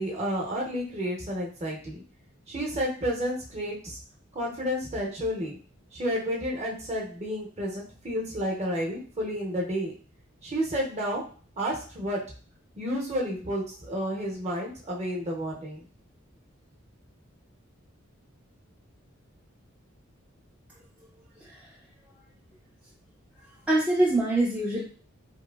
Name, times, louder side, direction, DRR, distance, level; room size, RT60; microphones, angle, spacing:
voice 1, 0.0-2.0 2.5-4.0 4.3-5.6 5.9-9.9 10.4-11.2 11.6-12.2 12.8-15.8, equal, 30° right, -2 dB, 0.7 m, -31 dB
voice 2, 21.4-21.7 23.7-24.8, right 1 dB, 5° right, -5 dB, 0.3 m, -24 dB
2.8 x 2.4 x 2.3 m, 0.41 s
head